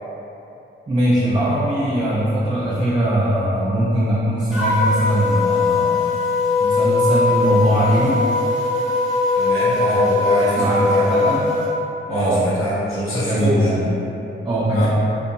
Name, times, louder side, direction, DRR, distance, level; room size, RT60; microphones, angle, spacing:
voice 1, 0.9-6.1 6.6-8.2 9.9-11.4 12.1-12.4 12.9-13.9 14.4-14.9, right 1 dB, 20° right, -8 dB, 0.3 m, -21 dB
sound 1, 4.5-11.7, left 3 dB, 5° right, 0.8 m, -20 dB
voice 2, 9.3-11.1 12.1-13.7 14.7-14.9, equal, 80° left, -9 dB, 0.7 m, -24 dB
2.6 x 2.2 x 2.5 m, 2.9 s
wide cardioid pair, 125°, 21 cm